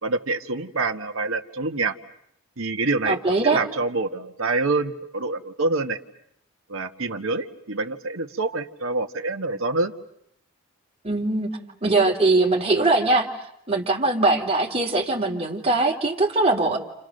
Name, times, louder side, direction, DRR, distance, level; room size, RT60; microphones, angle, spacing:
voice 1, 0.0-1.9 2.6-6.0 6.7-9.9, right 3 dB, 75° right, 6 dB, 1.5 m, -26 dB
voice 2, 3.1-3.6 11.0-11.5 11.8-13.3 13.7-16.8, right 2 dB, 30° right, -1 dB, 3.5 m, -21 dB
30.0 x 29.0 x 6.6 m, 0.74 s
head